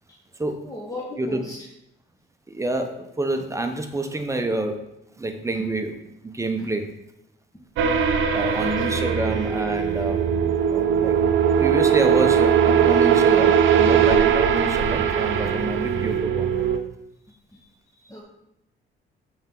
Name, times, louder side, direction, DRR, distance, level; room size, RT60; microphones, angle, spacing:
voice 1, 0.6-1.6 5.5-5.7 6.6-6.7 8.6-9.1 13.1-13.2 17.5-18.2, left 1 dB, 15° left, -3 dB, 1.2 m, -38 dB
voice 2, 2.5-4.9 5.2-6.0 6.2-6.8 8.3-10.2 10.7-11.2 11.6-16.6, right 2 dB, 15° right, 6 dB, 0.9 m, -27 dB
sound 1, 7.8-16.8, right 8 dB, 85° right, 0.6 m, -20 dB
7.7 x 4.4 x 3.8 m, 0.82 s
cardioid pair, 90°, 20 cm